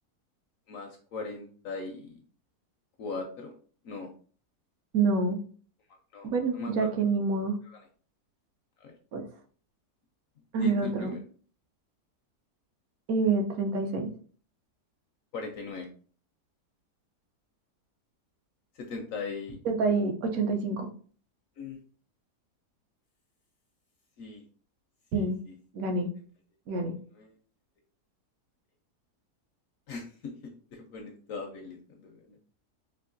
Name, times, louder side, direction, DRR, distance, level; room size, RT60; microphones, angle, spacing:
voice 1, 0.7-2.2 3.0-3.5 3.8-4.1 6.1-7.0 7.7-7.8 8.8-8.9 10.6-11.2 15.3-15.9 18.8-19.6 21.6-21.8 24.2-24.4 25.1-25.5 27.2-27.3 29.9-32.4, left 3 dB, 70° left, 4 dB, 0.8 m, -39 dB
voice 2, 4.9-5.4 6.2-7.6 9.1-9.2 10.5-11.2 13.1-14.1 19.6-20.9 25.1-25.4 25.7-26.1 26.7-27.0, right 4 dB, 70° right, 4 dB, 1.0 m, -27 dB
4.5 x 2.5 x 2.5 m, 0.43 s
omnidirectional pair, 1.7 m